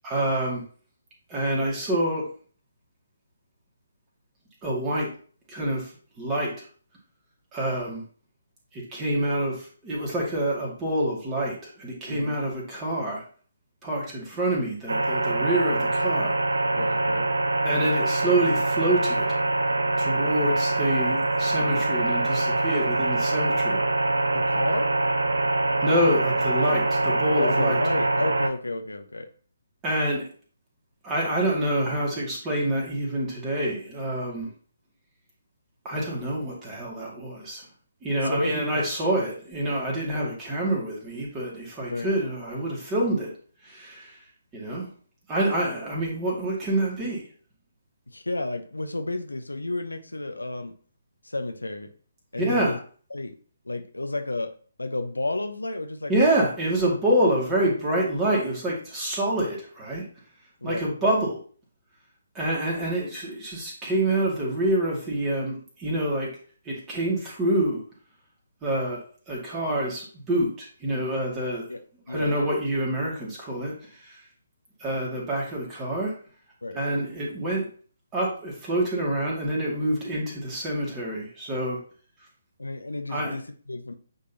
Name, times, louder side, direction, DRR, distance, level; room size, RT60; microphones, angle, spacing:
voice 1, 0.0-0.6 1.3-2.2 4.6-5.1 5.5-5.9 6.2-6.5 7.5-8.0 8.7-13.2 13.8-16.4 17.6-19.3 20.0-23.8 25.8-27.8 29.8-30.3 31.0-34.5 35.8-37.6 38.0-43.3 43.6-44.1 44.5-44.9 45.3-47.2 52.4-52.8 56.1-60.0 60.6-61.4 62.3-66.3 66.7-67.8 68.6-69.0 69.3-71.7 72.1-73.7 74.1-74.2 74.8-76.1 76.7-77.7 78.1-81.8 83.1-83.4, right 1 dB, 15° right, -4 dB, 2.3 m, -27 dB
voice 2, 12.1-12.4 16.8-17.3 24.3-24.9 26.6-26.8 27.4-29.3 38.2-38.8 41.9-42.2 48.1-50.7 51.2-51.9 52.3-52.8 53.1-53.4 53.6-54.5 54.8-56.4 60.6-60.9 71.7-71.8 72.1-72.6 76.6-76.8 82.6-83.9, left 2 dB, 75° left, 7 dB, 0.8 m, -31 dB
sound 1, 14.9-28.5, right 2 dB, 70° right, 0.6 m, -24 dB
8.9 x 3.8 x 2.8 m, 0.42 s
figure-of-eight pair, 140°, 0 cm